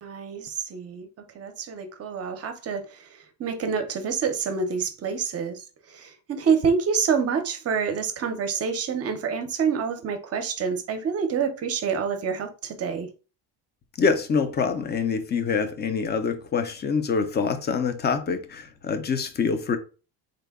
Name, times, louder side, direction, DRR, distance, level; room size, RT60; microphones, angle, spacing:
voice 1, 0.0-1.1 1.3-13.1, right 6 dB, 35° right, 0.5 m, -27 dB
voice 2, 14.0-19.8, left 5 dB, 25° left, 0.4 m, -25 dB
3.8 x 2.1 x 3.5 m
cardioid pair, 150°, 44 cm